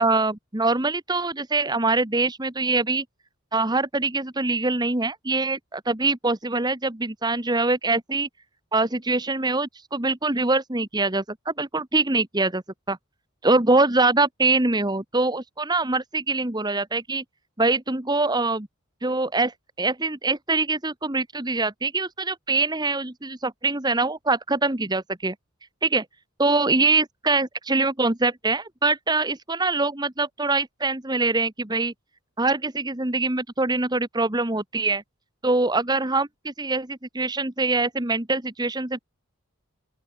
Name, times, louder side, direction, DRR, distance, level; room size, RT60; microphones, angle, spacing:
voice 1, 0.0-3.0 3.5-8.3 8.7-12.6 12.9-13.0 13.4-17.2 17.6-18.7 19.0-25.3 25.8-26.0 26.4-31.9 32.4-35.0 35.4-39.0, right 3 dB, 20° right, 1.4 m, -24 dB
open air
head